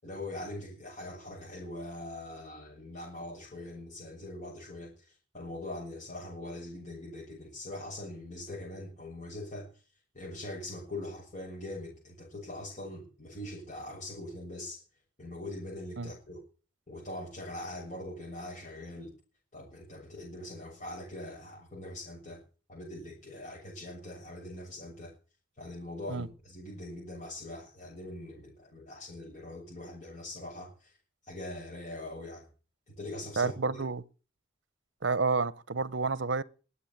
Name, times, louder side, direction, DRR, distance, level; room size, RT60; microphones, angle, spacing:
voice 1, 0.0-4.9 5.3-9.7 10.1-14.8 15.2-16.4 16.9-19.1 19.5-22.4 22.7-25.1 25.6-30.9 31.3-32.5 32.9-33.8, left 1 dB, 35° left, 6.9 m, -42 dB
voice 2, 33.4-34.0 35.0-36.4, right 4 dB, 65° right, 0.8 m, -29 dB
21.0 x 8.5 x 7.3 m
head